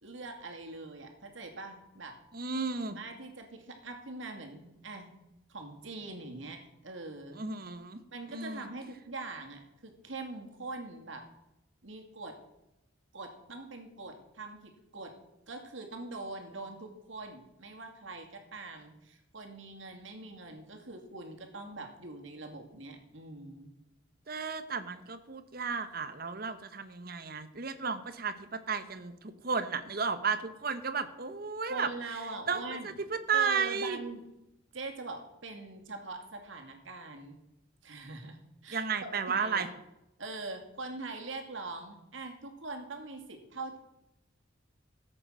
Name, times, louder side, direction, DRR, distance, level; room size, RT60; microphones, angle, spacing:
voice 1, 0.0-2.2 2.9-5.1 5.5-7.4 8.1-11.2 11.8-12.3 13.1-15.1 15.5-23.7 31.6-33.0 33.3-34.2 34.7-37.4 37.8-38.4 38.6-39.7 40.2-43.8, right 3 dB, 80° right, 3 dB, 2.4 m, -43 dB
voice 2, 2.3-3.0 7.4-8.0 8.3-8.7 24.3-31.9 32.5-34.0 38.7-39.7, right 5 dB, 50° right, 11 dB, 1.0 m, -33 dB
14.5 x 7.9 x 6.2 m, 0.89 s
head